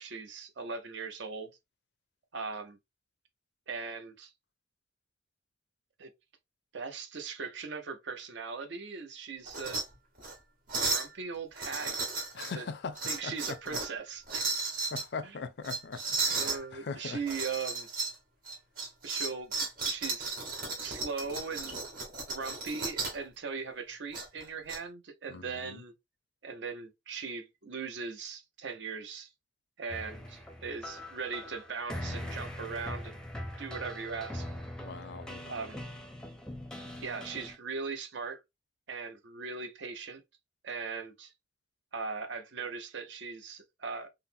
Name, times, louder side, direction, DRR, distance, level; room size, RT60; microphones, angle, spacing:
voice 1, 0.0-1.5 2.3-2.8 3.7-4.3 6.0-6.1 6.7-9.8 10.9-12.1 12.6-12.7 13.1-14.5 16.3-17.9 19.0-19.5 19.8-20.4 20.8-21.8 22.3-25.9 26.4-29.3 29.8-33.2 33.6-34.5 35.5-35.8 37.0-38.4 38.9-40.2 40.6-41.3 41.9-44.1, right 5 dB, 65° right, 0.6 m, -39 dB
sound 1, 9.5-9.8 10.2-10.3 10.7-11.1 11.6-12.5 13.0-13.9 14.3-15.0 15.6-16.6 17.3-18.2 18.5-23.2 24.1-24.8, right 3 dB, 45° right, 1.1 m, -34 dB
voice 2, 12.3-13.8 14.5-14.6 14.9-17.2 25.3-25.8 34.8-35.5, left 4 dB, 60° left, 0.4 m, -41 dB
sound 2, 29.9-37.5, left 1 dB, 5° left, 0.5 m, -42 dB
3.9 x 2.0 x 2.6 m
head